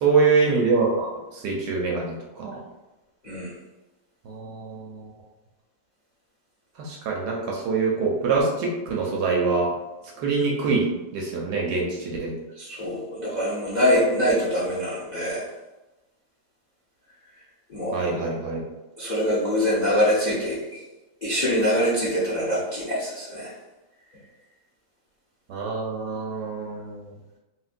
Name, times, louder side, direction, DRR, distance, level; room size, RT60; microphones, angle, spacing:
voice 1, 0.0-2.6 4.3-5.1 6.8-9.7 10.2-12.3 17.9-18.6 25.5-27.0, right 4 dB, 70° right, -2 dB, 1.0 m, -25 dB
voice 2, 12.6-15.4 17.7-18.0 19.0-20.8 21.2-23.5, equal, 65° left, -7 dB, 0.4 m, -24 dB
3.1 x 2.8 x 2.4 m, 1.1 s
omnidirectional pair, 2.0 m